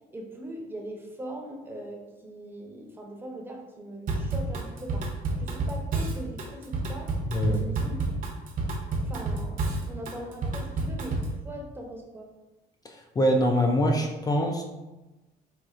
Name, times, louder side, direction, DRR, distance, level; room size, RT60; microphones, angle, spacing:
voice 1, 0.1-5.1 5.4-7.1 7.4-8.0 9.0-12.3, right 1 dB, 15° right, 0 dB, 0.7 m, -40 dB
Drum kit / Drum, 4.1-11.4, right 3 dB, 55° right, 0.7 m, -29 dB
voice 2, 7.3-7.7 12.8-14.6, equal, 20° left, 2 dB, 0.3 m, -24 dB
4.2 x 2.4 x 2.4 m, 1.1 s
cardioid pair, 110°, 17 cm